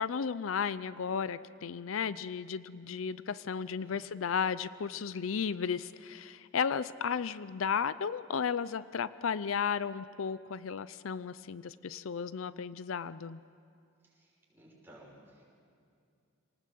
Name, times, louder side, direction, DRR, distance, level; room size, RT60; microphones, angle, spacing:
voice 1, 0.0-13.4, left 6 dB, 80° left, 16 dB, 0.5 m, -34 dB
voice 2, 14.0-15.4, right 1 dB, 10° right, -4 dB, 6.0 m, -57 dB
27.0 x 19.0 x 7.8 m, 2.4 s
head